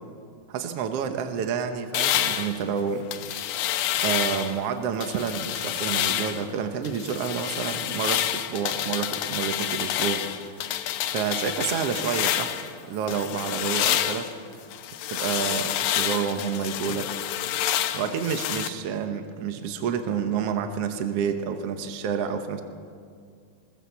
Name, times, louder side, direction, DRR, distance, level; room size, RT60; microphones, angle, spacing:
voice 1, 0.5-3.1 4.0-10.4 11.0-12.5 12.9-14.3 15.1-17.1 17.9-22.6, right 7 dB, 75° right, 6 dB, 1.4 m, -29 dB
sound 1, 1.9-4.6 5.0-6.5 6.8-12.7 13.1-18.7, left 12 dB, 75° left, 2.4 m, -28 dB
21.0 x 20.0 x 7.1 m, 2.1 s
omnidirectional pair, 4.3 m